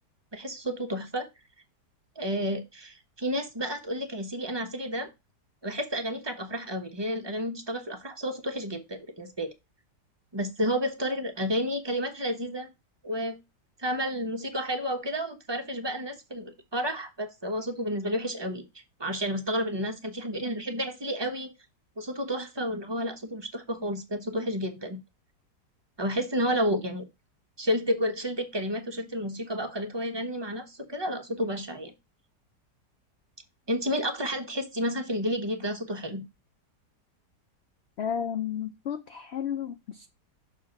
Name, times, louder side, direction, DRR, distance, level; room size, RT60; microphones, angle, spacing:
voice 1, 0.3-1.3 2.2-5.1 5.6-9.5 10.3-12.7 13.0-13.4 13.8-18.6 19.0-21.5 22.0-25.0 26.0-27.0 27.6-31.9 33.7-36.2, equal, 20° right, 0.7 m, -31 dB
voice 2, 38.0-40.1, left 8 dB, 80° left, 0.5 m, -32 dB
6.3 x 3.6 x 5.7 m
omnidirectional pair, 1.8 m